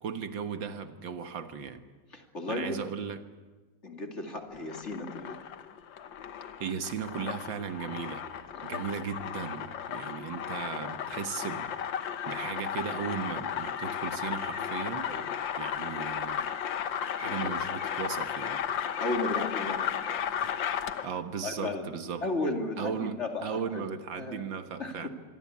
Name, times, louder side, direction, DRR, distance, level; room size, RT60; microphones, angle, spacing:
voice 1, 0.0-1.8 2.5-3.2 6.6-8.3 8.6-11.8 12.3-15.1 15.6-16.5 17.2-18.6 21.0-22.2 22.8-25.1, right 6 dB, 85° right, 9 dB, 2.1 m, -36 dB
voice 2, 2.1-2.8 3.8-5.4 8.5-8.7 15.0-15.2 17.3-17.5 19.0-19.9 21.4-21.9 22.2-23.9 24.2-24.5 24.8-25.1, left 2 dB, 35° left, 3 dB, 2.8 m, -34 dB
sound 1, 4.5-21.2, left 8 dB, 80° left, 1.8 m, -34 dB
25.5 x 22.5 x 8.5 m, 1.3 s
omnidirectional pair, 2.0 m